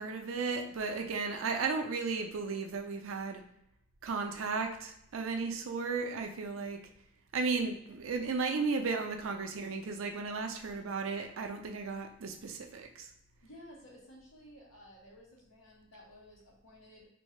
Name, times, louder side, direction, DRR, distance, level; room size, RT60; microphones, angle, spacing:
voice 1, 0.0-3.4 4.0-6.8 7.3-13.1, right 4 dB, 85° right, 4 dB, 0.5 m, -34 dB
voice 2, 13.4-17.1, equal, 75° left, -3 dB, 1.1 m, -54 dB
3.5 x 2.6 x 3.1 m, 0.77 s
head